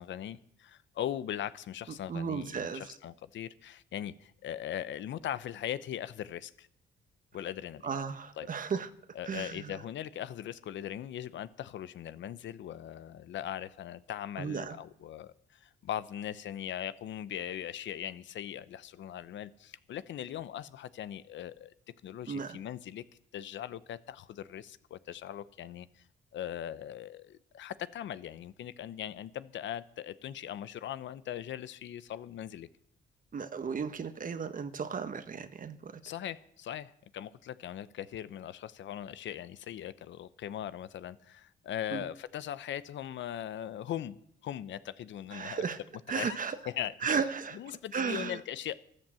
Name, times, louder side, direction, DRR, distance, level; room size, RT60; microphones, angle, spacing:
voice 1, 0.0-6.7 7.3-7.9 8.4-8.5 9.1-21.7 22.0-23.0 23.3-26.0 26.3-32.7 36.0-45.6 46.1-46.4 46.7-47.2 47.5-48.8, left 11 dB, 70° left, 0.8 m, -40 dB
voice 2, 2.1-3.0 7.8-8.9 9.2-9.8 14.4-14.8 22.3-22.6 33.3-36.0 41.9-42.0 45.3-45.8 46.1-46.6 47.0-47.6 47.9-48.4, right 6 dB, 45° right, 1.2 m, -34 dB
13.0 x 12.0 x 7.6 m
cardioid pair, 90°, 20 cm